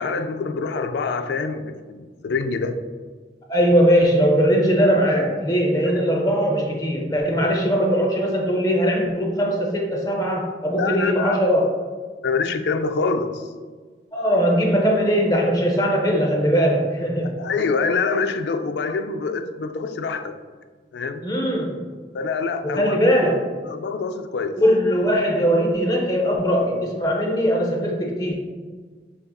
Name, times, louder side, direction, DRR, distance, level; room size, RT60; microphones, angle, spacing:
voice 1, 0.0-2.8 5.9-6.0 10.8-11.4 12.2-13.5 17.2-20.3 20.9-21.2 22.1-23.0 23.7-24.6, left 4 dB, 70° left, 8 dB, 0.3 m, -25 dB
voice 2, 3.5-11.7 14.1-17.3 21.2-21.8 22.6-23.4 24.6-28.3, equal, 20° left, 0 dB, 0.6 m, -20 dB
6.5 x 2.6 x 2.3 m, 1.5 s
head